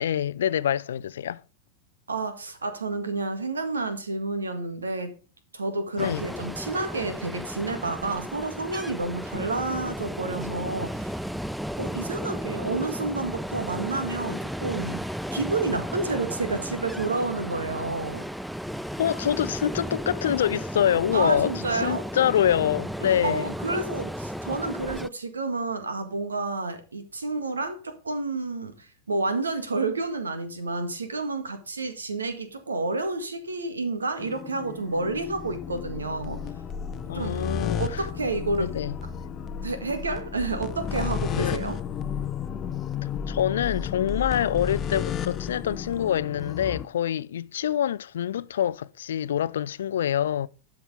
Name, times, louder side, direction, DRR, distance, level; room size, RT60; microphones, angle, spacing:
voice 1, 0.0-1.4 6.0-6.3 19.0-23.5 37.1-38.0 38.6-38.9 41.4-41.6 43.3-50.5, left 10 dB, 60° left, 0.5 m, -26 dB
voice 2, 2.1-5.1 5.5-11.2 11.8-18.2 21.1-22.0 23.0-36.5 37.1-37.5 37.7-38.7 39.6-41.8, right 3 dB, 75° right, 1.8 m, -30 dB
Ocean, 6.0-25.1, equal, ahead, 0.4 m, -34 dB
sound 1, 34.2-46.8, left 7 dB, 25° left, 0.7 m, -33 dB
12.0 x 6.0 x 3.6 m
figure-of-eight pair, 90°, 0 cm